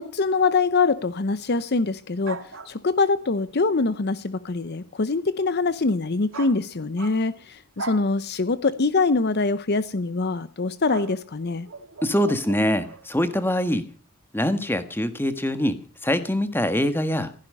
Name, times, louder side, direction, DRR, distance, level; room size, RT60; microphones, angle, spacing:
voice 1, 0.0-2.4 2.7-11.7, left 3 dB, 50° left, 15 dB, 0.7 m, -24 dB
sound 1, 2.2-3.1 6.3-7.4 7.8-8.1 9.3-9.6 10.9-13.1, right 3 dB, 60° right, 2.3 m, -39 dB
voice 2, 12.0-13.8 14.3-15.8 16.0-17.3, equal, 10° left, 10 dB, 1.5 m, -23 dB
16.0 x 15.0 x 5.5 m, 0.40 s
head